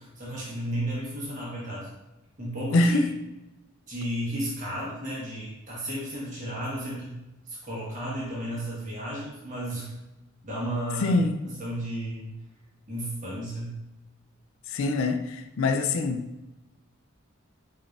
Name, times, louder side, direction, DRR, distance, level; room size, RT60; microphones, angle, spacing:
voice 1, 0.0-1.9 2.4-3.0 3.9-9.9 10.4-11.2 11.4-12.4 12.9-13.8, right 1 dB, 35° right, -7 dB, 1.3 m, -33 dB
voice 2, 2.7-3.1 11.0-11.4 14.7-16.2, left 2 dB, 65° left, 6 dB, 0.4 m, -24 dB
4.6 x 3.8 x 2.5 m, 0.98 s
head